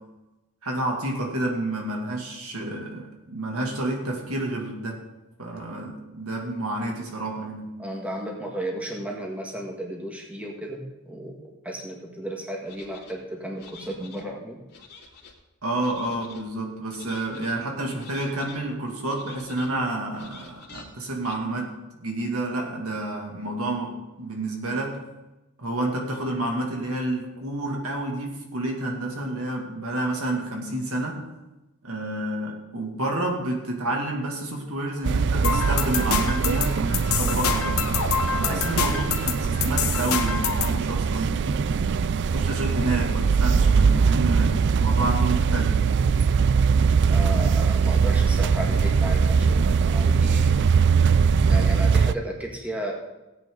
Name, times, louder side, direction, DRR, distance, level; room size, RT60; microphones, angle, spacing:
voice 1, 0.6-5.1 5.4-7.8 15.6-25.0 25.6-31.2 31.8-37.9 38.3-41.7 42.2-45.8, right 1 dB, 75° right, 1 dB, 2.5 m, -29 dB
voice 2, 7.8-14.6 38.4-38.7 47.1-50.6 51.4-52.9, right 1 dB, 5° right, -1 dB, 1.7 m, -34 dB
sound 1, 12.7-13.1 13.6-14.2 14.7-15.3 15.8-16.4 16.9-17.5 18.0-18.6 19.1-19.7 20.1-20.8 21.2-21.4, left 5 dB, 50° left, 2.5 m, -47 dB
sound 2, 35.0-52.1, right 5 dB, 50° right, 0.4 m, -21 dB
sound 3, 35.4-40.8, left 7 dB, 70° left, 1.2 m, -27 dB
17.0 x 9.1 x 4.0 m, 1.0 s
head